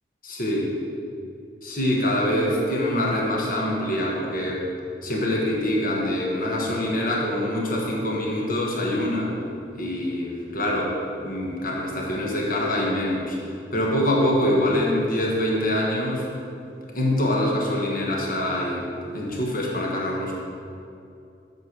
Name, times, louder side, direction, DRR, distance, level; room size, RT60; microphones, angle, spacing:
voice 1, 0.2-0.7 1.6-4.6 5.0-9.3 9.7-10.9 11.2-13.4 13.7-16.3 16.9-20.4, left 1 dB, 50° left, -2 dB, 1.3 m, -24 dB
8.1 x 4.6 x 6.0 m, 2.5 s
head